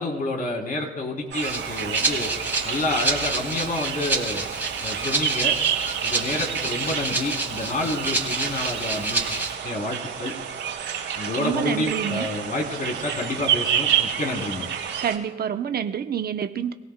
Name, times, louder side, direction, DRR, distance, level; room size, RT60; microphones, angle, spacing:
voice 1, 0.0-2.3 2.6-4.4 4.8-5.6 6.0-9.3 9.6-10.3 11.2-14.7, left 2 dB, 45° left, 0 dB, 3.4 m, -29 dB
sound 1, 1.3-15.2, right 9 dB, 70° right, 4.4 m, -29 dB
Rattle (instrument), 1.4-9.5, right 2 dB, 10° right, 2.6 m, -28 dB
voice 2, 11.4-12.3 15.0-16.7, right 8 dB, 50° right, 8 dB, 0.8 m, -27 dB
26.0 x 17.0 x 2.2 m, 1.2 s
cardioid pair, 90°, 20 cm